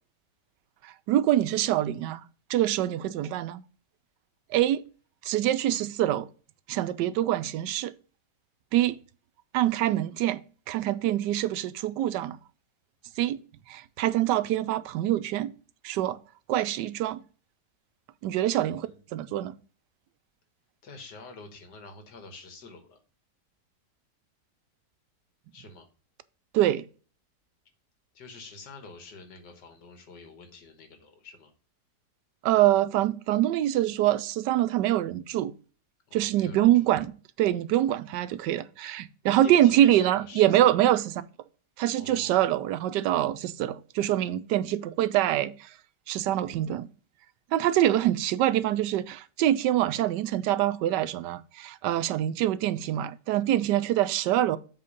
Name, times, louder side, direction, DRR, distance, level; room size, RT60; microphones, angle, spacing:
voice 1, 0.8-2.2 2.5-3.6 4.5-4.8 5.2-6.3 6.7-7.9 8.7-9.0 9.5-10.4 10.7-12.4 13.2-13.4 13.7-15.5 15.8-16.2 16.5-17.2 18.2-19.5 26.5-26.8 32.4-35.5 36.1-37.1 37.4-41.0 41.8-45.5 46.1-46.9 47.5-54.6, right 13 dB, 90° right, 1.2 m, -25 dB
voice 2, 18.6-19.0 20.8-23.0 25.5-25.9 28.1-31.5 36.1-36.9 39.3-40.9 42.0-42.4 47.7-48.0, left 3 dB, 85° left, 2.1 m, -47 dB
7.8 x 3.7 x 5.3 m
omnidirectional pair, 1.8 m